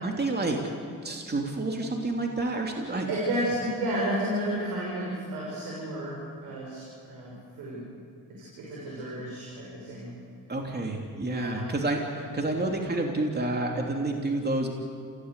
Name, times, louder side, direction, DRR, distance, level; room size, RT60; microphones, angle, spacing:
voice 1, 0.0-0.6 1.0-3.1 10.5-14.7, right 2 dB, 30° right, 1 dB, 3.0 m, -29 dB
voice 2, 2.9-7.9 8.3-10.1 11.3-11.7, right 1 dB, 85° right, -4 dB, 6.5 m, -32 dB
27.5 x 17.0 x 8.3 m, 2.3 s
supercardioid pair, 65°, 35 cm